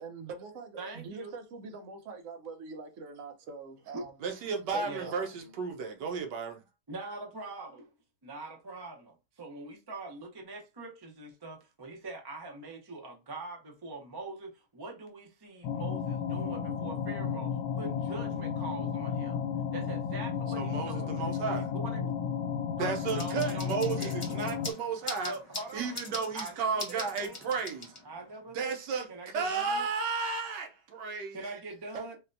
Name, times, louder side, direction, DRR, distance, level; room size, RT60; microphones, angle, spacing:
voice 1, 0.0-4.1 4.7-5.5 31.9-32.2, right 4 dB, 60° right, 0.9 m, -43 dB
voice 2, 0.8-1.3 3.9-4.0 4.8-5.1 6.9-7.9 8.2-19.4 19.7-21.2 21.5-22.1 22.8-24.4 25.2-26.0 26.3-27.4 28.0-28.8 29.1-29.9 31.3-32.2, right 3 dB, 40° right, 0.3 m, -43 dB
voice 3, 4.2-6.6 20.6-21.7 22.8-25.3 25.7-27.9 28.5-31.6, right 5 dB, 85° right, 1.4 m, -33 dB
sound 1, 15.6-24.7, left 7 dB, 85° left, 1.2 m, -33 dB
sound 2, 23.1-28.3, left 2 dB, 30° left, 0.5 m, -43 dB
4.2 x 2.2 x 2.6 m
omnidirectional pair, 1.8 m